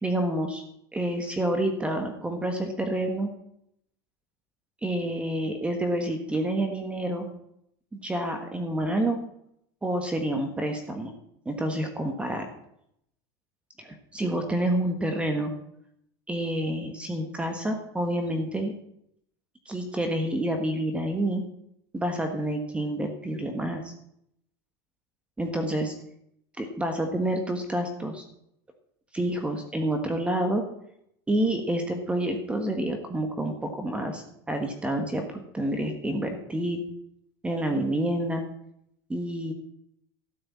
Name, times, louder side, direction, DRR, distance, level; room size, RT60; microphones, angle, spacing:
voice 1, 0.0-0.6 0.9-3.3 4.8-7.3 7.9-9.2 9.8-11.1 11.4-12.5 13.8-15.5 16.3-18.7 19.6-21.4 21.9-23.9 25.4-25.9 26.6-28.2 29.1-30.6 31.3-35.2 35.5-36.8 37.4-38.4 39.1-39.5, right 1 dB, 10° right, 5 dB, 1.4 m, -28 dB
13.0 x 6.7 x 8.5 m, 0.74 s
supercardioid pair, 145°, 13 cm